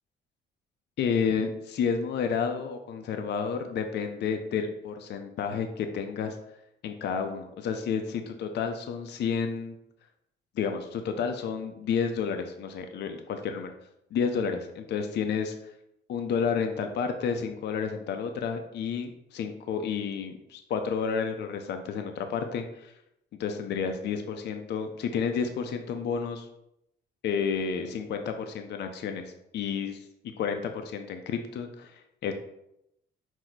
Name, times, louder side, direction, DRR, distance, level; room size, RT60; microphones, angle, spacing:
voice 1, 1.0-6.4 6.8-9.8 10.6-13.7 14.1-15.7 16.1-22.9 23.4-26.5 27.2-30.1 30.4-32.3, left 6 dB, 60° left, 6 dB, 0.4 m, -31 dB
4.5 x 2.0 x 3.9 m, 0.82 s
cardioid pair, 90°, 20 cm